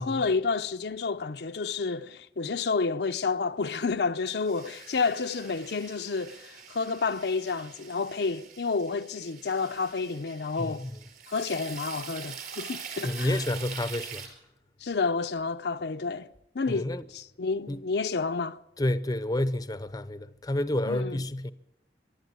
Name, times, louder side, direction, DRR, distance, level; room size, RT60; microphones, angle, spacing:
voice 1, 0.0-10.8 11.3-13.4 14.8-16.3 16.5-18.6 20.9-21.2, left 4 dB, 65° left, 0.6 m, -30 dB
sound 1, 4.4-14.3, right 7 dB, 50° right, 4.8 m, -44 dB
voice 2, 10.6-10.9 13.0-14.3 16.7-17.0 17.7-17.8 18.8-21.5, left 1 dB, 20° left, 0.6 m, -29 dB
24.0 x 12.0 x 9.4 m
head